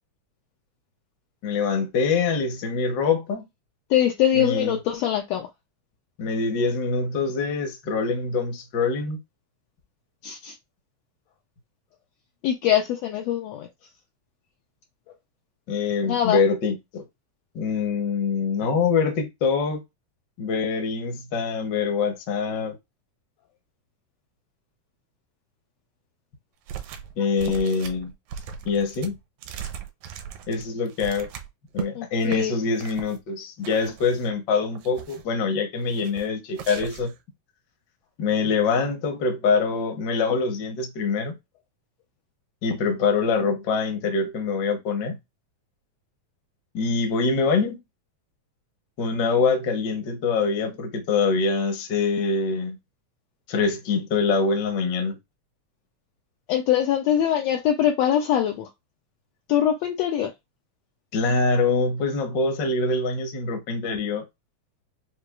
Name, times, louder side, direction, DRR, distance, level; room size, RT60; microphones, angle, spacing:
voice 1, 1.4-3.5 4.3-4.8 6.2-9.2 15.7-17.0 17.5-19.8 20.4-22.8 27.2-28.1 28.6-29.2 30.5-31.3 31.7-37.1 38.2-41.4 42.6-45.2 46.7-47.8 49.0-52.8 53.5-55.2 61.1-64.2, left 4 dB, 65° left, 1.1 m, -24 dB
voice 2, 3.9-5.5 10.2-10.5 12.4-13.7 16.0-16.4 31.9-32.5 56.5-58.7 59.5-60.3, left 10 dB, 85° left, 1.5 m, -23 dB
sound 1, 26.7-27.1 27.4-31.9 32.2-32.4 32.8-33.2 33.6-34.4 34.7-35.3 35.9-36.3 36.5-37.2, right 9 dB, 80° right, 1.9 m, -38 dB
6.6 x 2.3 x 2.3 m
omnidirectional pair, 3.4 m